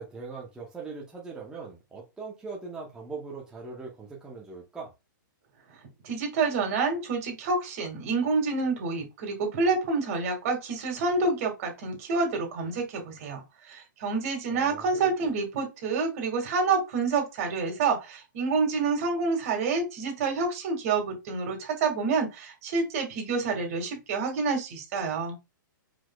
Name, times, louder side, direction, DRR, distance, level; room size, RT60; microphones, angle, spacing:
voice 1, 0.0-4.9 14.5-15.1, right 4 dB, 5° right, -3 dB, 0.8 m, -40 dB
voice 2, 6.0-25.4, right 4 dB, 45° right, 4 dB, 1.9 m, -28 dB
4.7 x 4.1 x 2.3 m, 0.24 s
hypercardioid pair, 155°, 11 cm